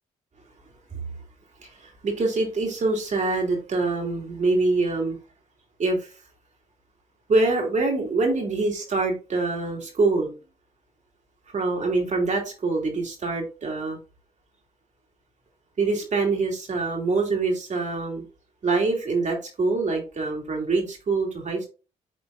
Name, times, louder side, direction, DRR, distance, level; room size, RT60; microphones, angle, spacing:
voice 1, 1.6-5.2 5.8-6.1 7.3-10.3 11.5-14.0 15.8-18.2 18.6-21.7, right 3 dB, 50° right, 2 dB, 2.9 m, -25 dB
10.5 x 3.9 x 2.5 m, 0.33 s
supercardioid pair, 65°, 16 cm